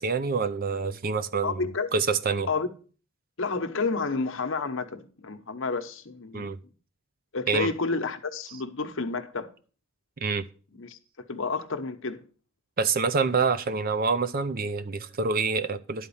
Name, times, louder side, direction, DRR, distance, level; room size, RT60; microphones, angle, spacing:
voice 1, 0.0-2.5 6.3-6.6 7.5-7.7 10.2-10.4 12.8-16.1, right 4 dB, 45° right, 0.5 m, -27 dB
voice 2, 1.4-1.9 2.5-2.7 3.4-6.5 7.3-9.5 10.8-11.0 11.3-12.2, left 4 dB, 65° left, 1.0 m, -30 dB
11.0 x 4.2 x 7.1 m
head